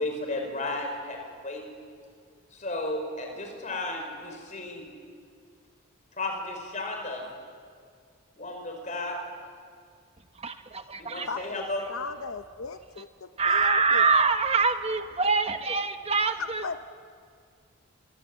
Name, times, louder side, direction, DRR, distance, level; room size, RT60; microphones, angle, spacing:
voice 1, 0.0-1.6 2.5-4.9 6.2-7.2 8.4-9.2 11.0-11.8, left 2 dB, 35° left, 2 dB, 4.9 m, -33 dB
voice 2, 10.4-11.3 13.4-16.8, right 4 dB, 30° right, 8 dB, 1.2 m, -25 dB
voice 3, 11.2-14.1 16.2-16.8, left 5 dB, 80° left, 9 dB, 0.7 m, -37 dB
25.5 x 24.0 x 7.9 m, 2.1 s
head